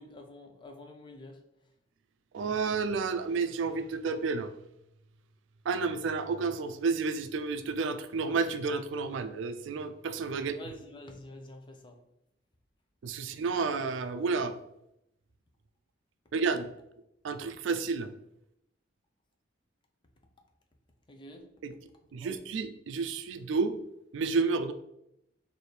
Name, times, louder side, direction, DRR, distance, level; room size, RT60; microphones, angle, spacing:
voice 1, 0.0-1.4 10.4-12.0 21.1-21.5 22.1-22.3, left 1 dB, 25° left, 3 dB, 0.5 m, -48 dB
voice 2, 2.3-4.5 5.7-10.5 13.0-14.5 16.3-16.7 17.2-18.1 21.6-21.7 22.1-23.8 24.1-24.7, right 4 dB, 80° right, 10 dB, 0.3 m, -31 dB
4.2 x 2.6 x 3.2 m, 0.82 s
head